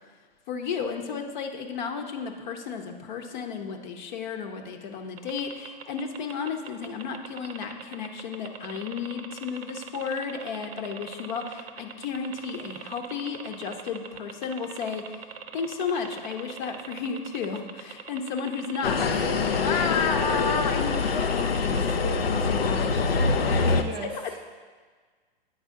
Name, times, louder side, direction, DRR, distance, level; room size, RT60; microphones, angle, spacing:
voice 1, 0.5-15.2 15.5-23.2, left 5 dB, 50° left, 5 dB, 0.9 m, -33 dB
sound 1, 5.2-21.9, right 7 dB, 85° right, 0.6 m, -41 dB
sound 2, 18.8-23.8, left 4 dB, 90° left, 0.6 m, -24 dB
voice 2, 23.7-24.4, right 4 dB, 20° right, 2 dB, 0.4 m, -38 dB
8.8 x 4.9 x 3.6 m, 1.5 s
hypercardioid pair, 115°, 29 cm